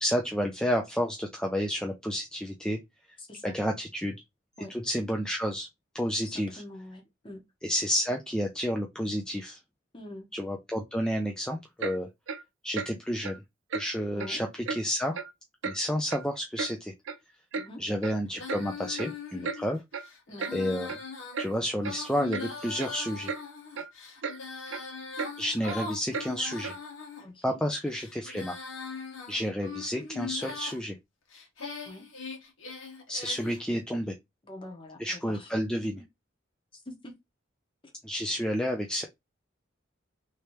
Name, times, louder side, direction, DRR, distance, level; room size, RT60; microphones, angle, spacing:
voice 1, 0.0-2.8 3.4-4.2 4.7-5.7 5.9-6.6 7.6-9.6 10.3-12.1 12.6-13.3 13.7-15.2 15.6-16.9 17.8-19.8 20.5-20.9 21.4-23.3 25.4-26.8 27.4-28.6 29.3-30.9 33.1-34.1 35.0-36.0 38.0-39.0, equal, 5° left, 0.4 m, -30 dB
voice 2, 3.2-3.5 4.6-4.7 6.2-7.4 9.9-10.3 14.1-14.4 17.5-17.8 20.3-20.5 27.2-27.6 31.8-32.0 34.4-35.6 36.7-37.1, left 1 dB, 25° left, 1.0 m, -45 dB
Clock, 11.8-12.0 12.3-12.4 12.7-12.9 13.2-13.4 13.7-13.9 14.2-14.3 14.7-14.8 15.1-15.3 15.6-15.8 16.1-16.7 17.1-17.2 17.5-17.7 18.0-18.2 18.5-18.6 19.0-19.1 19.4-19.6 19.9-20.1 20.4-20.6 20.9-21.0 21.3-21.5 21.8-21.9 22.3-22.5 22.8-23.0 23.3-23.4 23.8-23.9 24.2-24.4 24.7-24.8 25.2-25.3 25.7-25.8 26.1-26.3 26.6-26.8, right 5 dB, 80° right, 0.5 m, -34 dB
Female singing, 18.3-27.2 27.8-30.8 31.3-33.6, left 4 dB, 80° left, 1.2 m, -41 dB
3.2 x 2.8 x 3.1 m
head